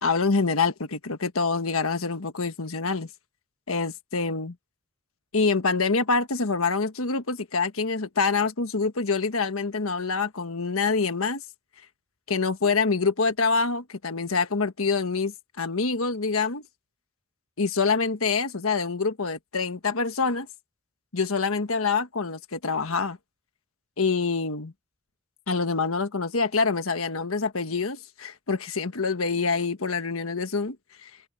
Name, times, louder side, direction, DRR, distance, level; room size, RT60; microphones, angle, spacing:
voice 1, 0.0-3.1 3.7-4.5 5.3-11.4 12.3-16.6 17.6-20.5 21.1-23.2 24.0-24.7 25.5-30.8 31.0-31.1, left 4 dB, 90° left, 1.4 m, -26 dB
open air
head